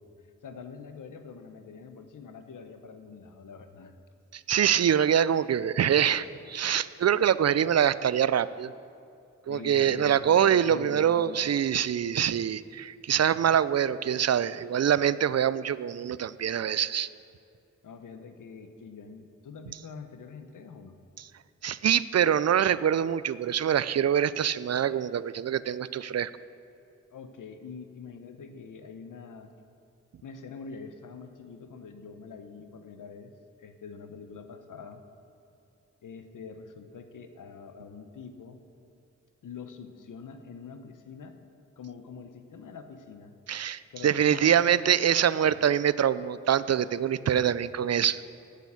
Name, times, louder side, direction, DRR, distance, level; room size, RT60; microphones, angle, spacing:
voice 1, 0.4-3.9 9.5-11.6 17.8-20.9 27.1-29.5 30.2-33.3 33.6-35.0 36.0-38.6 39.4-41.4 41.8-43.4 43.9-44.7 47.3-47.5, left 5 dB, 90° left, 8 dB, 0.9 m, -45 dB
voice 2, 4.3-8.7 9.5-17.1 21.2-21.3 21.6-26.3 43.5-48.2, right 9 dB, 55° right, 17 dB, 0.4 m, -25 dB
8.3 x 8.2 x 8.5 m, 2.6 s
cardioid pair, 45°, 31 cm